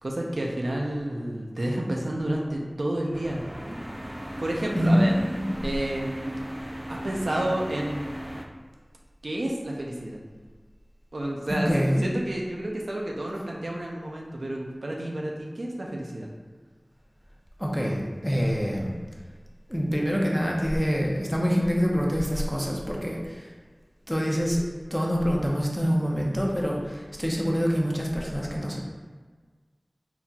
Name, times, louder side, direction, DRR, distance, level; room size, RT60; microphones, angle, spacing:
voice 1, 0.0-3.4 4.4-5.2 5.6-6.3 6.9-8.1 9.2-10.2 11.1-11.7 12.0-16.3, right 1 dB, 90° right, -1 dB, 0.5 m, -30 dB
sound 1, 3.1-8.5, equal, 25° right, 0.4 m, -37 dB
voice 2, 4.7-5.6 11.5-12.1 17.6-18.9 19.7-23.5 24.1-24.6 24.9-28.8, equal, 5° left, -2 dB, 0.7 m, -25 dB
4.1 x 3.9 x 2.4 m, 1.4 s
wide cardioid pair, 50°, 0 cm